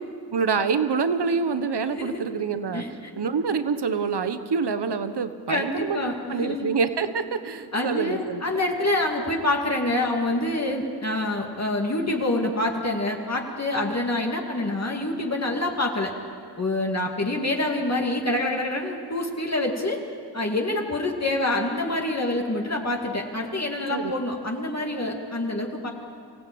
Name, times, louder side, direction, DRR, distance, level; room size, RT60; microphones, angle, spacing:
voice 1, 0.3-2.8 3.2-8.4 23.9-24.1, right 5 dB, 80° right, 10 dB, 1.2 m, -26 dB
voice 2, 1.9-2.3 2.7-3.1 5.5-6.7 7.7-16.1 16.6-20.0 20.3-25.9, left 2 dB, 40° left, 0 dB, 2.5 m, -26 dB
26.0 x 16.0 x 8.7 m, 2.3 s
cardioid pair, 55°, 40 cm